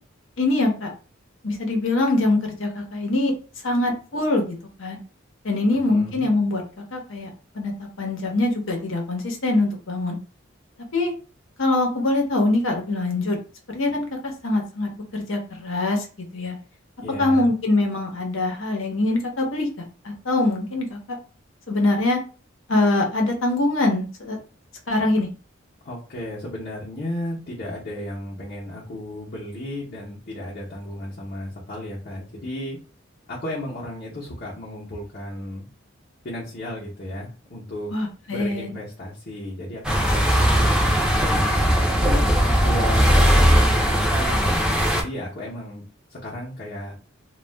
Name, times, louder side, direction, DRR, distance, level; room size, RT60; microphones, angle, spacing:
voice 1, 0.4-0.9 1.4-3.3 3.6-4.4 4.8-5.0 5.4-6.6 6.9-7.3 7.5-10.2 10.9-11.1 11.6-13.4 13.7-16.1 16.3-16.6 17.2-19.7 20.0-21.2 21.7-22.2 22.7-24.4 24.9-25.3 37.9-38.7, left 2 dB, 85° left, 2 dB, 0.9 m, -23 dB
voice 2, 5.8-6.3 17.0-17.5 25.8-32.8 33.3-35.7 36.2-37.9 38.3-42.3 42.6-44.4 44.9-45.8 46.1-47.0, left 1 dB, 50° left, -6 dB, 0.7 m, -34 dB
sound 1, 39.8-45.0, equal, 5° right, 0.4 m, -19 dB
2.3 x 2.1 x 3.3 m, 0.36 s
head